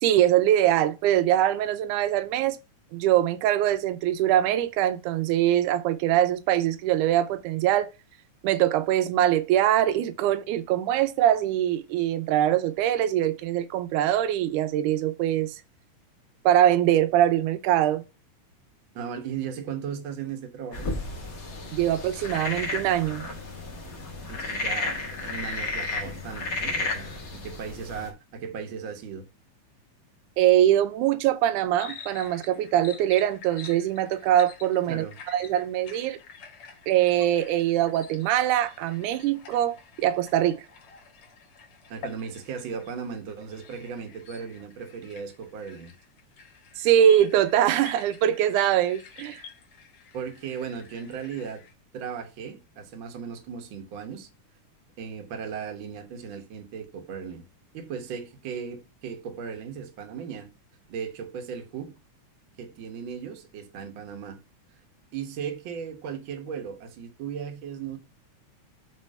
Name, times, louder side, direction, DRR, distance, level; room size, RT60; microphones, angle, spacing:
voice 1, 0.0-2.6 2.9-7.9 8.4-15.6 16.5-18.0 21.7-23.2 30.4-36.2 36.9-40.6 46.8-49.4, right 11 dB, 85° right, 2.1 m, -23 dB
voice 2, 18.9-20.9 24.3-29.2 34.9-35.1 41.9-45.9 50.1-51.6 51.9-54.3 55.0-57.4 57.7-60.5 60.9-61.9 62.6-64.4 65.1-68.0, right 7 dB, 55° right, 1.6 m, -36 dB
sound 1, 20.7-28.1, left 3 dB, 40° left, 1.3 m, -33 dB
sound 2, 31.8-51.7, left 5 dB, 55° left, 1.8 m, -48 dB
6.2 x 3.2 x 5.3 m
omnidirectional pair, 3.5 m